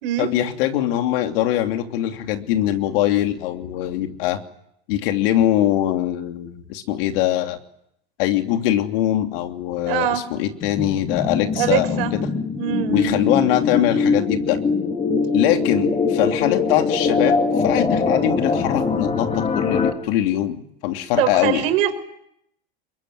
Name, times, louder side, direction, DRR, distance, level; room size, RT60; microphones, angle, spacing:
voice 1, 0.2-4.4 4.9-7.6 8.2-12.3 12.9-14.6 15.3-17.3 17.6-21.7, left 12 dB, 65° left, 5 dB, 3.0 m, -22 dB
voice 2, 9.8-10.2 11.6-12.1 12.6-13.2 21.2-21.9, right 12 dB, 65° right, 9 dB, 4.8 m, -22 dB
sound 1, 10.6-19.9, left 4 dB, 20° left, 3.8 m, -22 dB
23.0 x 22.5 x 9.6 m, 0.76 s
supercardioid pair, 120°, 30 cm